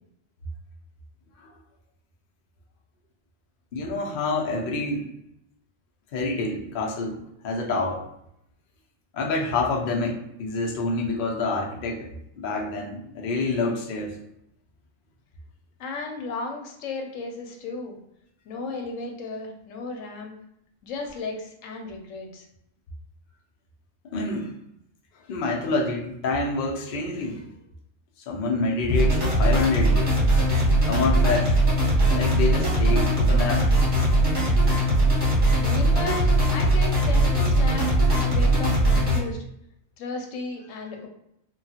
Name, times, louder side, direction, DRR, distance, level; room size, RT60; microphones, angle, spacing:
voice 1, 3.7-5.0 6.1-7.2 7.4-8.0 9.1-14.2 24.0-24.5 25.3-27.4 28.3-30.1 30.4-30.5 30.8-31.6 32.1-33.7, left 3 dB, 55° left, 0 dB, 0.6 m, -27 dB
voice 2, 15.8-18.0 18.5-20.3 20.8-22.5 35.3-39.4 40.0-41.1, left 3 dB, 90° left, 2 dB, 1.0 m, -34 dB
sound 1, 28.9-39.2, right 1 dB, 30° right, 1.0 m, -20 dB
2.9 x 2.3 x 2.7 m, 0.77 s
omnidirectional pair, 1.3 m